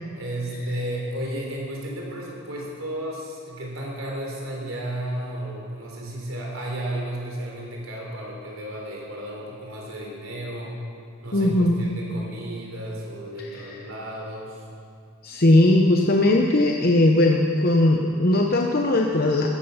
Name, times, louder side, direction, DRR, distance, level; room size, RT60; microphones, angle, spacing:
voice 1, 0.1-10.8 11.2-14.7, right 1 dB, 70° right, -1 dB, 3.7 m, -33 dB
voice 2, 11.3-11.8 15.2-19.5, left 1 dB, 45° left, 1 dB, 0.8 m, -19 dB
15.5 x 13.5 x 5.7 m, 2.3 s
head